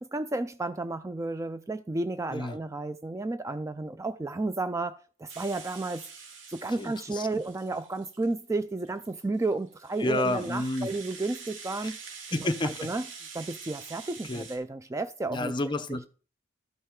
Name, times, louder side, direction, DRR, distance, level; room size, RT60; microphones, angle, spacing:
voice 1, 0.0-6.1 6.5-12.0 12.3-13.1 13.3-15.5 15.9-16.0, right 2 dB, 15° right, 0.3 m, -32 dB
Rattle (instrument), 5.3-8.3 8.8-14.6, right 5 dB, 70° right, 2.0 m, -46 dB
voice 2, 6.8-7.4 10.0-10.9 12.3-12.7 14.3-14.5 15.3-16.1, left 2 dB, 25° left, 0.7 m, -30 dB
12.5 x 5.5 x 3.7 m
head